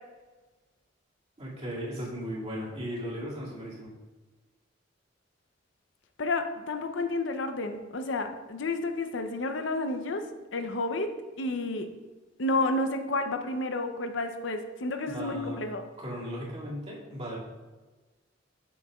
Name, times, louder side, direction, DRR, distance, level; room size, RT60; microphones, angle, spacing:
voice 1, 1.4-3.9 15.0-15.6 16.0-17.4, equal, 35° right, -6 dB, 2.2 m, -36 dB
voice 2, 6.2-10.3 10.5-11.9 12.4-15.9, left 2 dB, 70° left, 7 dB, 0.6 m, -31 dB
8.0 x 7.2 x 2.3 m, 1.3 s
head